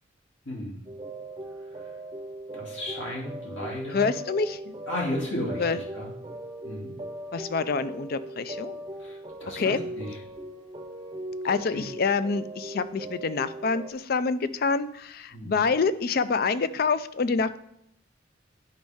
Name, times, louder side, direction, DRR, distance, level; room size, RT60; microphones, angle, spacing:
voice 1, 0.4-0.8 1.7-1.9 2.5-4.1 4.9-6.1 6.6-6.9 9.0-10.2 11.7-11.8 15.3-15.5, left 1 dB, 75° left, -4 dB, 2.7 m, -34 dB
sound 1, 0.9-13.9, right 1 dB, 25° right, 0.7 m, -39 dB
voice 2, 3.9-4.7 5.6-5.8 7.3-8.8 9.6-9.8 11.4-17.6, left 4 dB, 50° left, 13 dB, 0.5 m, -27 dB
10.5 x 5.2 x 3.5 m, 0.73 s
head